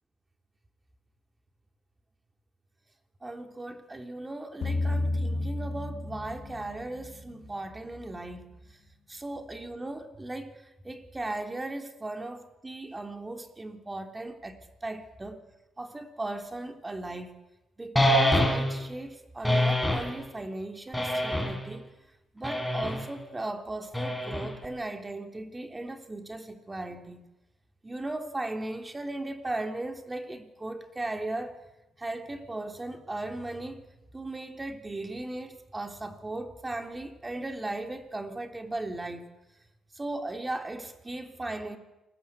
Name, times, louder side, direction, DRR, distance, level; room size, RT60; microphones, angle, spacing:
voice 1, 3.2-8.5 9.1-10.6 10.8-15.4 15.8-17.3 17.8-21.8 22.3-27.2 27.8-31.6 32.0-33.8 34.1-39.3 39.9-41.8, right 2 dB, 20° right, 3.2 m, -37 dB
sound 1, 4.6-7.0, left 2 dB, 55° left, 3.4 m, -30 dB
sound 2, 18.0-18.9 19.4-20.1 20.9-21.7 22.4-23.1 23.9-24.7, left 1 dB, 5° left, 5.2 m, -25 dB
28.0 x 20.0 x 8.3 m
cardioid pair, 90°, 0 cm